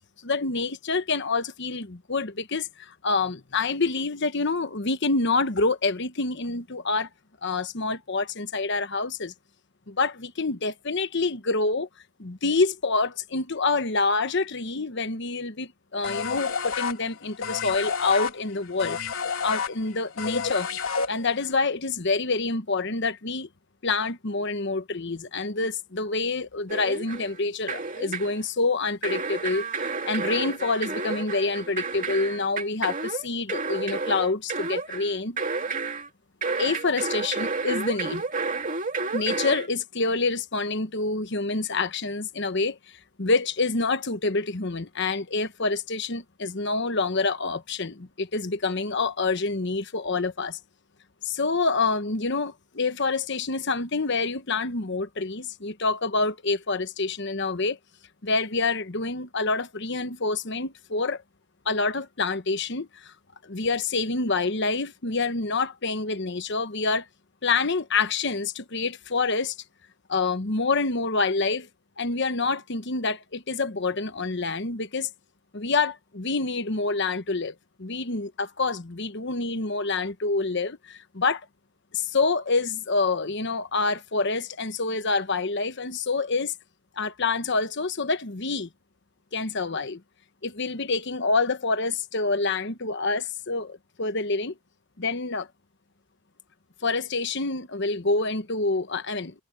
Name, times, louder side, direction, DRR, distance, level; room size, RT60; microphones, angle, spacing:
voice 1, 0.2-7.1 7.4-9.3 9.9-11.9 12.2-19.0 19.4-20.7 21.1-23.5 23.8-35.4 36.6-38.2 39.1-42.8 43.2-50.6 51.2-57.8 58.2-61.2 61.6-63.1 63.4-67.0 67.4-69.5 70.1-71.7 72.0-75.1 75.5-81.4 81.9-86.5 87.0-88.7 89.3-90.0 90.4-94.5 95.0-95.5 96.8-99.4, left 3 dB, 55° left, 1.2 m, -27 dB
sound 1, 16.0-21.5, left 6 dB, 70° left, 3.4 m, -30 dB
sound 2, 26.7-27.4 27.7-28.4 29.0-36.1 36.4-39.7, right 4 dB, 35° right, 2.6 m, -31 dB
head